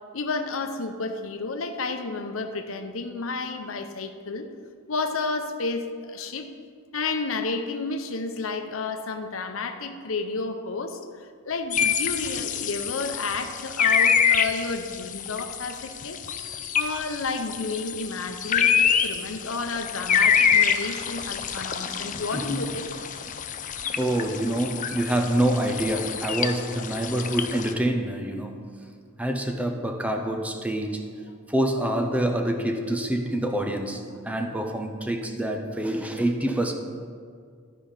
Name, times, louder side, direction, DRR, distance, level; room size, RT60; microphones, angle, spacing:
voice 1, 0.1-4.5 4.9-6.5 6.9-16.2 16.7-22.9, left 3 dB, 75° left, 7 dB, 0.7 m, -31 dB
sound 1, 11.7-27.7, left 7 dB, 40° left, 0.5 m, -26 dB
voice 2, 21.9-22.6 23.9-28.6 29.2-31.1 31.5-36.7, right 1 dB, 5° right, 5 dB, 0.6 m, -26 dB
12.0 x 5.1 x 5.6 m, 2.1 s
head